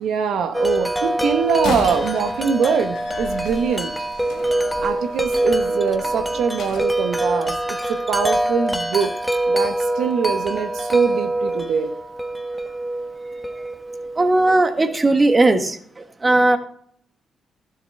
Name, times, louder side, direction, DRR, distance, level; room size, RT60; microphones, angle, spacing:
voice 1, 0.0-3.9 4.8-9.1 9.5-11.9, right 6 dB, 80° right, 7 dB, 1.0 m, -23 dB
Wind chime, 0.5-14.5, right 1 dB, ahead, 1.2 m, -24 dB
Slam, 1.5-6.9, left 5 dB, 85° left, 1.3 m, -35 dB
voice 2, 14.2-16.6, right 2 dB, 25° right, 7 dB, 1.4 m, -17 dB
12.0 x 7.5 x 3.2 m, 0.62 s
cardioid pair, 80°, 0 cm